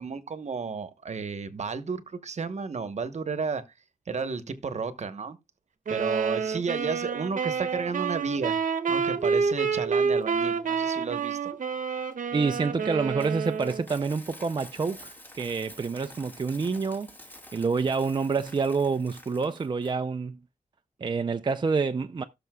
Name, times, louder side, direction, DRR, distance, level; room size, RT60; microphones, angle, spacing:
voice 1, 0.0-3.6 4.1-5.4 5.9-8.6 8.9-11.5, right 5 dB, 55° right, 1.0 m, -32 dB
sound 1, 5.9-13.9, right 6 dB, 80° right, 0.9 m, -28 dB
voice 2, 12.3-17.1 17.5-20.4 21.0-22.2, right 4 dB, 35° right, 0.5 m, -27 dB
Coin (dropping), 12.5-19.9, left 1 dB, 15° left, 2.7 m, -49 dB
17.0 x 6.7 x 2.3 m
wide cardioid pair, 130°, 14 cm